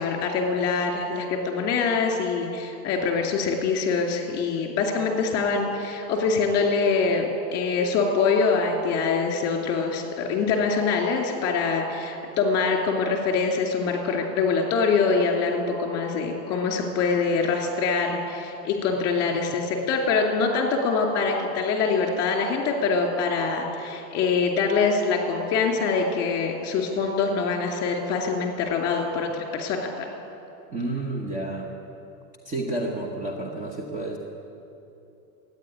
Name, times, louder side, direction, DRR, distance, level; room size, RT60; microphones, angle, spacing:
voice 1, 0.0-30.1, left 4 dB, 30° left, 2 dB, 2.5 m, -24 dB
voice 2, 30.7-31.7 32.4-34.2, right 2 dB, 15° right, 0 dB, 1.0 m, -30 dB
13.5 x 9.4 x 9.4 m, 2.9 s
supercardioid pair, 145°, 49 cm